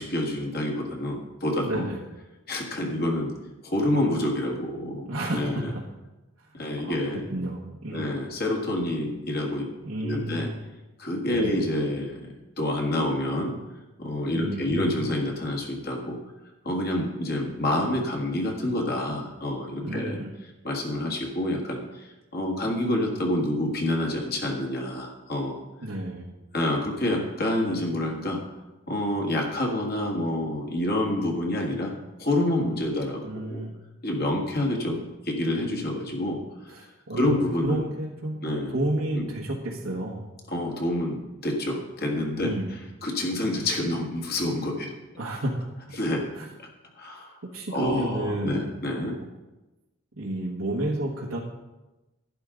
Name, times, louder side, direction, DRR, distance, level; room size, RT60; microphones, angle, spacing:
voice 1, 0.0-1.9 2.5-3.3 3.6-5.7 6.5-7.2 7.9-9.7 10.0-10.5 11.0-13.5 14.0-16.2 16.6-20.2 20.6-25.6 26.5-28.4 28.9-31.9 32.2-33.6 34.0-36.4 37.1-37.8 38.4-38.7 39.1-39.3 40.5-42.5 43.0-44.9 46.0-46.3 47.0-47.4 47.7-49.2, left 1 dB, 45° left, 0 dB, 1.7 m, -28 dB
voice 2, 1.6-2.0 5.0-5.8 6.8-7.0 7.3-8.1 9.8-10.5 11.4-11.6 14.3-15.0 19.8-20.3 25.8-26.3 33.2-33.7 36.7-40.2 42.4-42.7 45.2-46.0 46.3-46.4 47.5-48.7 50.2-51.4, right 1 dB, 80° right, -3 dB, 1.4 m, -31 dB
11.5 x 9.8 x 3.9 m, 1.1 s
head